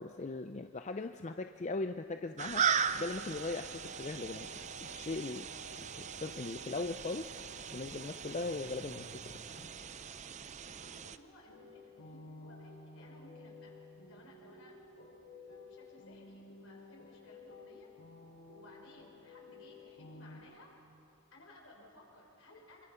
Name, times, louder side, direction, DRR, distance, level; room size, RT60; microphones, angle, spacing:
voice 1, 0.0-3.7 4.0-5.5 5.8-7.3 7.7-9.6, left 3 dB, 30° left, 8 dB, 0.5 m, -39 dB
sound 1, 2.4-11.2, right 7 dB, 35° right, 0.5 m, -38 dB
sound 2, 2.8-10.3, right 2 dB, 50° right, 3.5 m, -53 dB
voice 2, 10.8-13.7 14.1-14.8 15.3-17.9 18.5-20.7 21.3-22.9, left 1 dB, 65° left, 0 dB, 4.8 m, -59 dB
sound 3, 11.5-20.4, left 3 dB, 85° left, 7.7 m, -53 dB
27.0 x 23.5 x 5.7 m, 2.8 s
head